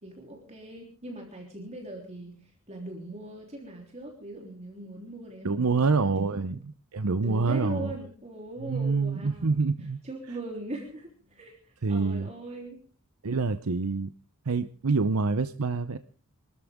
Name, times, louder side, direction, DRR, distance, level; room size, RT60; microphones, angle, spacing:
voice 1, 0.0-6.4 7.2-9.6 10.0-12.8, right 1 dB, 30° right, 0 dB, 3.6 m, -40 dB
voice 2, 5.4-7.9 8.6-10.0 11.8-12.3 13.2-14.1 14.5-16.0, right 4 dB, 90° right, 11 dB, 0.7 m, -26 dB
26.0 x 13.5 x 3.7 m, 0.40 s
head